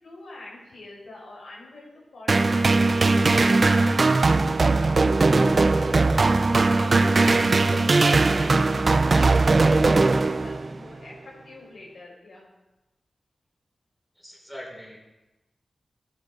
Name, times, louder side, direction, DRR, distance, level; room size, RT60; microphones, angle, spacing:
voice 1, 0.0-7.1 7.7-12.5, left 2 dB, 80° left, -3 dB, 5.2 m, -44 dB
sound 1, 2.3-10.8, right 3 dB, 45° right, 0.6 m, -19 dB
voice 2, 14.2-15.0, equal, ahead, -2 dB, 3.5 m, -41 dB
15.5 x 10.0 x 4.2 m, 1.0 s
wide cardioid pair, 90°, 0 cm